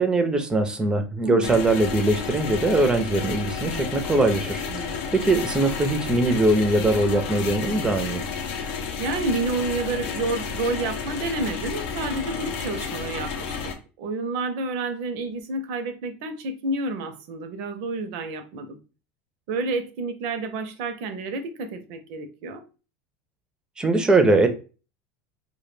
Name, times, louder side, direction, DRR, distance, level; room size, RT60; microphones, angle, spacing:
voice 1, 0.0-8.2 23.8-24.5, right 2 dB, 10° right, 0.4 m, -21 dB
voice 2, 1.2-1.6 4.7-5.1 9.0-13.7 14.0-18.8 19.5-22.6, right 3 dB, 65° right, 0.5 m, -29 dB
sound 1, 1.4-13.7, left 6 dB, 75° left, 0.6 m, -31 dB
2.2 x 2.1 x 3.1 m
supercardioid pair, 130°, 7 cm